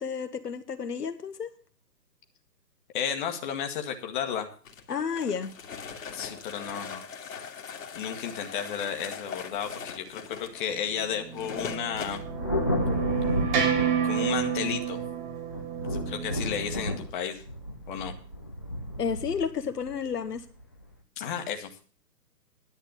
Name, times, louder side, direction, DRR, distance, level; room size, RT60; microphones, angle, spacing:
voice 1, 0.0-1.5 4.9-5.5 19.0-20.4, left 6 dB, 70° left, 7 dB, 1.5 m, -31 dB
voice 2, 2.9-4.5 6.1-7.0 8.0-12.2 14.0-15.0 15.9-17.4 17.9-18.1 21.2-21.8, left 8 dB, 30° left, 5 dB, 1.5 m, -33 dB
sound 1, 4.6-12.2, left 6 dB, 55° left, 2.2 m, -41 dB
sound 2, 11.2-17.0, right 8 dB, 30° right, 2.8 m, -30 dB
Thunder, 11.9-15.0 15.5-20.8, left 1 dB, 15° left, 0.5 m, -32 dB
11.0 x 8.3 x 6.9 m, 0.39 s
hypercardioid pair, 145°, 49 cm